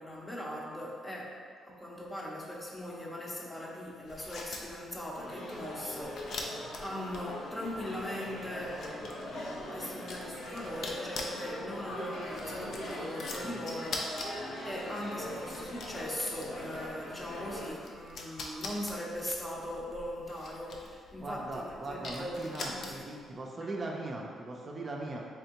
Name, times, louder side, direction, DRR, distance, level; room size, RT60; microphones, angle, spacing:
voice 1, 0.0-8.8 9.7-23.3 23.6-23.7, left 1 dB, 15° left, -3 dB, 0.7 m, -40 dB
sound 1, 4.0-23.3, left 2 dB, 65° left, 0.4 m, -45 dB
sound 2, 5.2-17.7, left 1 dB, 85° left, 0.8 m, -41 dB
voice 2, 21.2-25.2, right 2 dB, 40° right, -1 dB, 0.4 m, -39 dB
3.5 x 3.3 x 2.9 m, 2.1 s
cardioid pair, 90°, 0 cm